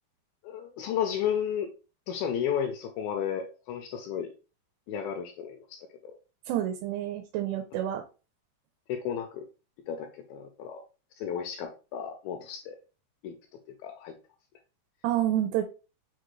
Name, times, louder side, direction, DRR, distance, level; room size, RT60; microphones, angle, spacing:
voice 1, 0.4-1.7 2.1-4.3 4.9-6.2 8.9-9.5 9.9-10.8 11.2-12.8 13.2-13.3 13.8-14.1, left 8 dB, 85° left, 5 dB, 2.1 m, -33 dB
voice 2, 6.5-8.0 15.0-15.6, right 12 dB, 90° right, 5 dB, 2.7 m, -28 dB
6.1 x 2.4 x 3.0 m, 0.33 s
omnidirectional pair, 4.7 m